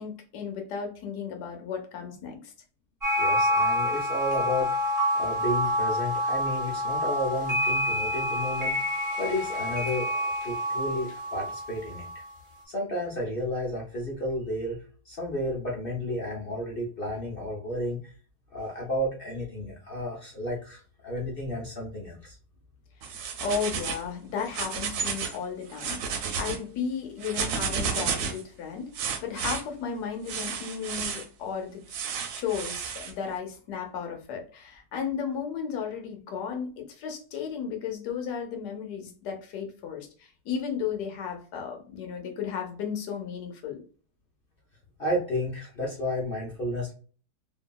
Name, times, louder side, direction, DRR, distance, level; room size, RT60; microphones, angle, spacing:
voice 1, 0.0-2.5 23.1-32.0 32.4-43.8, left 6 dB, 75° left, 3 dB, 1.2 m, -34 dB
sound 1, 3.0-12.3, left 1 dB, 20° right, 0.5 m, -28 dB
voice 2, 3.2-12.2 12.6-14.8 15.1-18.1 18.5-22.4 45.0-46.9, equal, 55° left, -3 dB, 0.6 m, -32 dB
sound 2, 23.0-24.1 24.4-25.4 25.7-26.6 27.2-28.4 28.9-29.6 30.3-31.3 31.9-33.1, right 6 dB, 75° right, 1.0 m, -32 dB
2.9 x 2.6 x 2.2 m, 0.40 s
omnidirectional pair, 1.8 m